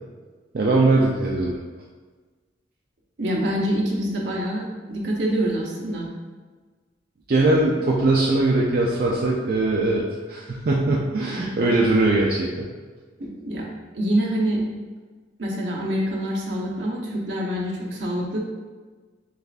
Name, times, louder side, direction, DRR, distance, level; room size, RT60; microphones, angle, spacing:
voice 1, 0.5-1.6 7.3-10.0 10.3-12.7, right 2 dB, 50° right, -4 dB, 0.4 m, -20 dB
voice 2, 3.2-4.6 4.9-6.1 13.2-13.7 13.9-14.6 15.4-18.4, right 1 dB, 75° right, -3 dB, 0.9 m, -25 dB
6.6 x 2.5 x 2.4 m, 1.4 s
head